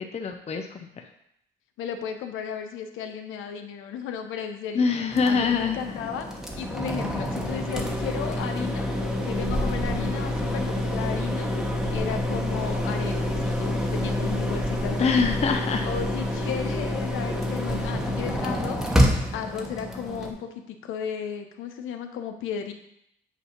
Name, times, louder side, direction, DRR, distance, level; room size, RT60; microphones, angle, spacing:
voice 1, 0.1-0.7 1.0-1.1 4.7-6.1 15.0-15.9, left 5 dB, 35° left, 5 dB, 0.6 m, -24 dB
voice 2, 1.8-4.9 5.2-6.3 6.6-8.9 9.2-11.5 11.9-15.3 15.8-22.7, left 7 dB, 85° left, 6 dB, 0.8 m, -34 dB
sound 1, 5.1-20.3, left 1 dB, ahead, 1.1 m, -27 dB
8.1 x 2.8 x 5.8 m, 0.76 s
cardioid pair, 90°, 20 cm